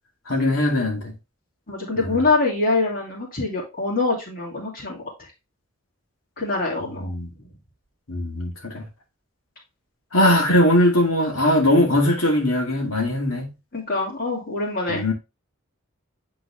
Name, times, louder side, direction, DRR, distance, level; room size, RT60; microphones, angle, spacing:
voice 1, 0.3-1.1 2.0-2.1 7.0-7.3 8.1-8.8 10.1-13.5 14.9-15.1, left 1 dB, 90° left, 2.1 m, -20 dB
voice 2, 1.7-5.0 6.4-7.1 7.4-7.5 13.7-15.1, left 3 dB, 45° left, 2.5 m, -24 dB
8.6 x 3.9 x 3.4 m
head